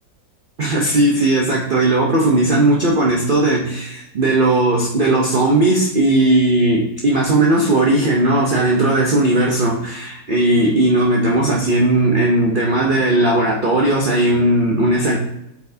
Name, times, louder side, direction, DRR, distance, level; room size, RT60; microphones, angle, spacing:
voice 1, 0.6-15.2, right 2 dB, 55° right, -2 dB, 0.6 m, -17 dB
8.2 x 4.5 x 2.7 m, 0.83 s
omnidirectional pair, 2.0 m